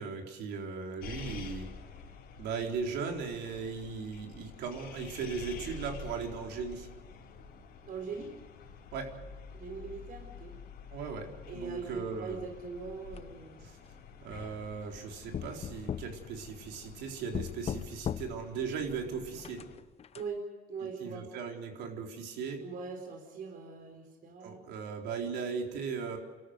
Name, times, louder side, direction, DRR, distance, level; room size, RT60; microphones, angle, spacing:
voice 1, 0.0-1.7 2.4-6.9 8.9-9.1 10.9-12.4 13.6-13.7 14.2-19.6 21.0-22.6 24.4-26.2, right 5 dB, 85° right, 2 dB, 4.0 m, -38 dB
sound 1, 1.0-19.8, left 6 dB, 75° left, 5.0 m, -49 dB
voice 2, 7.8-8.3 9.5-10.5 11.5-13.6 20.1-21.3 22.6-24.7, right 4 dB, 55° right, 3 dB, 4.2 m, -41 dB
sound 2, 13.1-13.8 14.3-15.0 15.3-17.0 17.3-18.6 19.4-20.2, left 8 dB, 40° left, 0.6 m, -39 dB
29.5 x 14.0 x 8.1 m, 1.4 s
cardioid pair, 110°, 17 cm